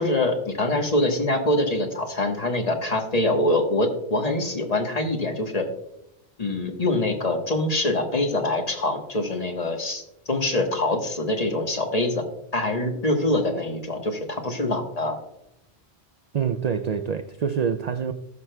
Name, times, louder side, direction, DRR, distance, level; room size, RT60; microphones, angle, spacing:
voice 1, 0.0-5.7 6.4-10.0 10.3-12.2 12.5-15.2, left 1 dB, 35° left, 3 dB, 1.2 m, -24 dB
voice 2, 16.3-18.1, right 7 dB, 60° right, 9 dB, 0.4 m, -26 dB
18.0 x 6.0 x 2.2 m, 0.81 s
omnidirectional pair, 1.1 m